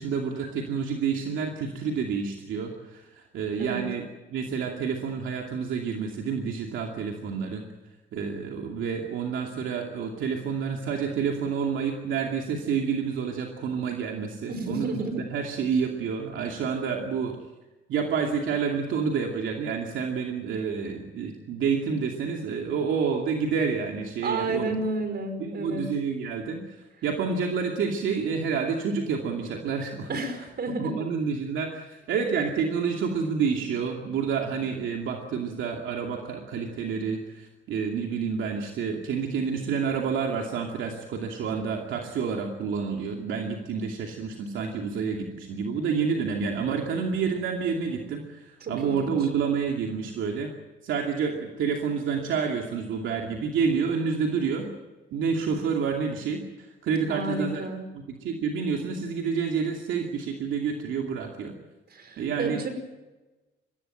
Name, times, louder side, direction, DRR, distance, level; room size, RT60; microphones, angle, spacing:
voice 1, 0.0-4.1 4.3-7.6 8.1-17.4 17.9-24.7 25.4-26.8 27.0-30.2 30.8-50.5 50.8-54.7 55.1-57.6 57.9-61.6 62.2-62.6, right 6 dB, 80° right, 1 dB, 2.6 m, -29 dB
voice 2, 14.5-15.3 24.2-25.9 30.1-31.1 48.6-49.1 57.1-57.8 61.9-62.7, right 3 dB, 55° right, 8 dB, 5.4 m, -31 dB
23.5 x 15.5 x 9.3 m, 1.1 s
cardioid pair, 90°, 20 cm